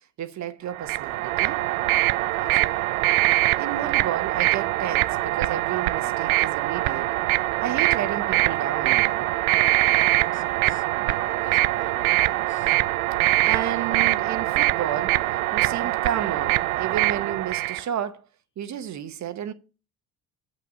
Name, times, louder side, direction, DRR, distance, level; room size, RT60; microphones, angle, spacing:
voice 1, 0.2-1.6 3.6-7.1 7.6-9.3 13.4-15.2 15.5-18.2 18.6-19.5, right 10 dB, 40° right, 1.1 m, -31 dB
sound 1, 0.7-17.8, right 17 dB, 75° right, 0.5 m, -23 dB
voice 2, 2.3-2.8 9.8-12.8, left 5 dB, 30° left, 1.0 m, -48 dB
9.0 x 6.0 x 6.9 m
figure-of-eight pair, 60°, 42 cm